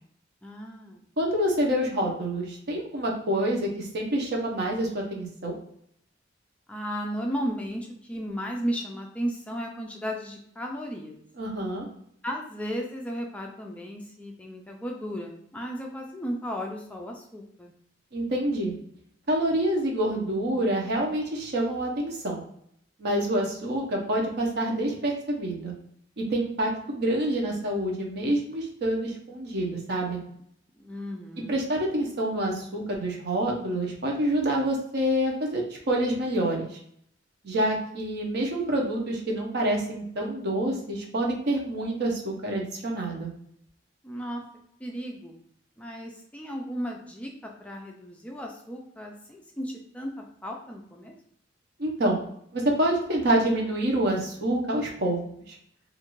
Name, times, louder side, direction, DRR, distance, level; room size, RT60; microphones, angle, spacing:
voice 1, 0.4-1.0 6.7-11.2 12.2-17.7 30.8-31.6 44.0-44.4 44.8-45.4 45.8-51.1, equal, 5° left, 0 dB, 0.3 m, -35 dB
voice 2, 1.2-5.6 11.4-11.9 18.1-18.7 19.3-22.4 23.0-25.7 26.2-30.2 31.4-36.7 37.4-43.3 51.8-52.2 52.5-55.2 55.5-55.6, right 1 dB, 60° right, 0 dB, 0.7 m, -27 dB
2.5 x 2.4 x 3.0 m, 0.69 s
head